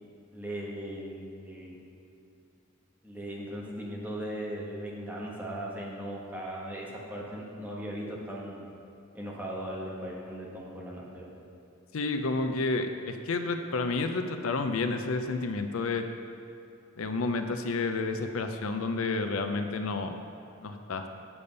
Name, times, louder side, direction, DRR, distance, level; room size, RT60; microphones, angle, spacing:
voice 1, 0.3-1.8 3.0-8.7 9.1-11.3, equal, 10° right, -4 dB, 1.4 m, -38 dB
voice 2, 11.9-16.1 17.0-20.1 20.6-21.1, left 3 dB, 80° left, 7 dB, 0.6 m, -30 dB
8.4 x 7.0 x 5.3 m, 2.6 s
head